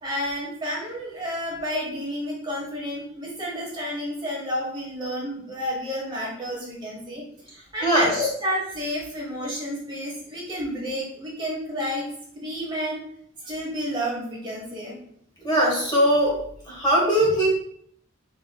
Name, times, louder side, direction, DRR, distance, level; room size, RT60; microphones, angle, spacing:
voice 1, 0.0-7.2 7.7-12.1 12.3-13.0 13.4-14.9, equal, 20° right, -4 dB, 1.3 m, -30 dB
voice 2, 7.8-8.2 15.4-16.4 16.7-17.5, right 1 dB, 20° left, -4 dB, 1.2 m, -20 dB
5.8 x 3.7 x 2.2 m, 0.67 s
head